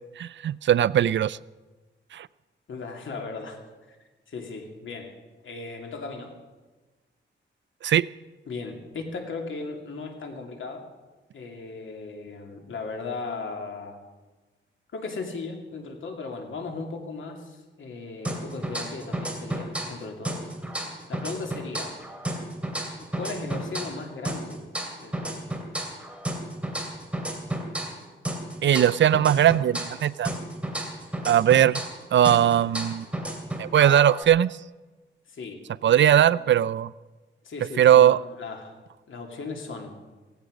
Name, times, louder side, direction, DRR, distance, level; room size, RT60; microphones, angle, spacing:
voice 1, 0.2-1.4 2.1-2.3 7.8-8.1 28.6-30.3 31.2-31.8 32.1-33.1 33.6-34.6 35.8-36.9 37.8-38.2, right 10 dB, 70° right, 20 dB, 0.4 m, -19 dB
voice 2, 2.7-3.6 3.9-4.0 4.3-5.1 5.4-6.3 8.5-10.8 11.3-14.0 14.9-20.4 21.1-21.9 23.2-24.6 25.0-25.5 35.3-35.6 36.3-36.4 37.4-38.7 39.1-39.9, left 4 dB, 80° left, 3 dB, 2.6 m, -37 dB
sound 1, 18.2-20.0 20.2-24.0 24.2-28.0 28.2-32.0 32.2-34.2, right 1 dB, 5° right, 2.7 m, -32 dB
17.0 x 16.5 x 5.1 m, 1.2 s
wide cardioid pair, 100°, 20 cm